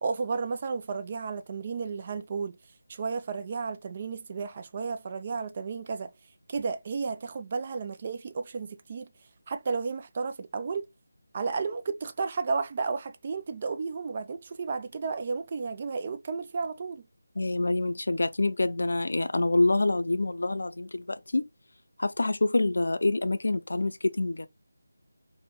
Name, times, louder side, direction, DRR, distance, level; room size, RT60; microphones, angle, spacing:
voice 1, 0.0-2.6 2.9-6.1 6.5-9.1 9.5-10.9 11.3-17.0, right 4 dB, 30° right, 0.3 m, -33 dB
voice 2, 17.4-21.5 22.0-24.5, left 2 dB, 65° left, 0.4 m, -26 dB
2.9 x 2.1 x 3.5 m
figure-of-eight pair, 160°, 0 cm